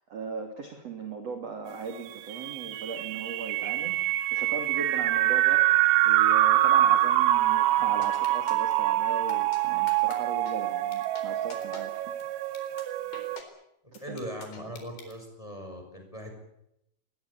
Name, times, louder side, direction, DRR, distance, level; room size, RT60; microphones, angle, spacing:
voice 1, 0.1-4.0 4.3-12.1 13.9-14.2, right 5 dB, 40° right, 5 dB, 3.0 m, -38 dB
sound 1, 2.3-13.4, right 14 dB, 85° right, 3.7 m, -25 dB
sound 2, 8.0-8.7 9.3-9.6 9.9-10.2 10.5-10.6 10.9-11.2 11.5-11.8 12.2-12.3 12.5-12.8 13.1-13.4 13.9-15.1, left 5 dB, 55° left, 5.9 m, -45 dB
voice 2, 14.0-16.3, equal, 5° left, 4 dB, 5.3 m, -39 dB
23.5 x 21.0 x 8.5 m, 0.81 s
omnidirectional pair, 5.8 m